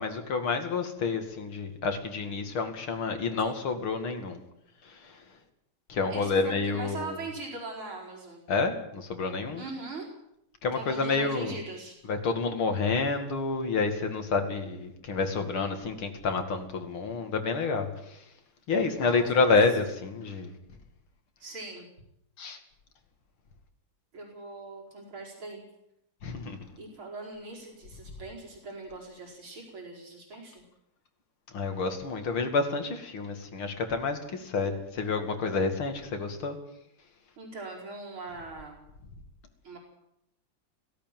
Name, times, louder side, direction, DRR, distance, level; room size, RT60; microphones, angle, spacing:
voice 1, 0.0-4.4 4.8-5.2 5.9-7.2 8.5-9.6 10.6-11.6 12.1-18.2 18.7-20.5 22.4-22.6 26.2-26.6 31.5-36.6, left 4 dB, 85° left, 6 dB, 3.2 m, -29 dB
voice 2, 6.1-8.4 9.6-10.1 10.7-12.0 19.0-19.5 21.4-21.9 24.1-25.6 26.8-30.6 37.4-38.8 39.6-39.8, right 3 dB, 85° right, 0 dB, 5.7 m, -41 dB
17.0 x 17.0 x 9.2 m, 0.81 s
omnidirectional pair, 2.2 m